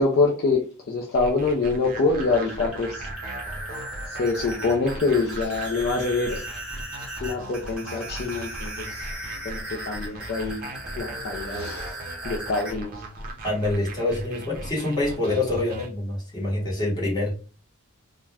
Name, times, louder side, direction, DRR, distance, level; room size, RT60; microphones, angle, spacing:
voice 1, 0.0-3.1 4.1-6.4 7.2-9.0 9.4-10.6 11.0-12.0 12.2-12.9, left 3 dB, 50° left, 0 dB, 0.4 m, -25 dB
sound 1, 1.1-15.9, right 1 dB, 40° right, 0.6 m, -39 dB
sound 2, 2.1-12.7, right 1 dB, 5° right, 0.9 m, -37 dB
voice 2, 13.4-17.3, left 2 dB, 20° left, -5 dB, 1.1 m, -26 dB
2.4 x 2.1 x 3.3 m, 0.36 s
head